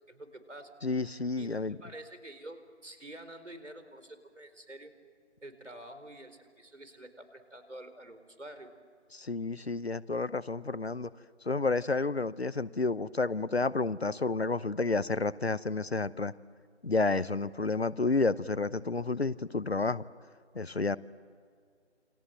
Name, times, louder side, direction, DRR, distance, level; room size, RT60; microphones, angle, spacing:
voice 1, 0.1-0.7 1.4-4.9 5.4-8.7, right 1 dB, 75° right, 10 dB, 4.4 m, -48 dB
voice 2, 0.8-1.8 9.1-11.1 11.4-16.3 16.8-20.0 20.5-21.0, left 3 dB, 60° left, 18 dB, 0.9 m, -30 dB
29.0 x 26.5 x 7.8 m, 2.1 s
figure-of-eight pair, 165°, 36 cm